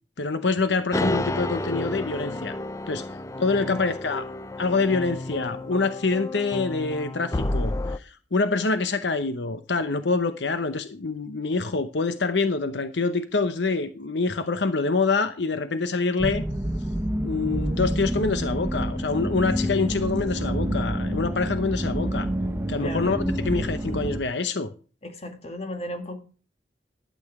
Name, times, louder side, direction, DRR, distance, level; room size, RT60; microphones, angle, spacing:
voice 1, 0.2-2.5 2.9-3.0 3.4-4.3 4.6-16.4 17.2-22.3 22.7-24.7, left 3 dB, 75° left, 11 dB, 0.8 m, -26 dB
sound 1, 0.9-8.0, left 1 dB, 15° left, 0.4 m, -31 dB
sound 2, 16.2-24.2, equal, 15° right, 0.8 m, -28 dB
voice 2, 22.8-23.3 25.0-26.2, left 1 dB, 35° left, 6 dB, 2.0 m, -35 dB
12.0 x 8.6 x 4.8 m, 0.38 s
head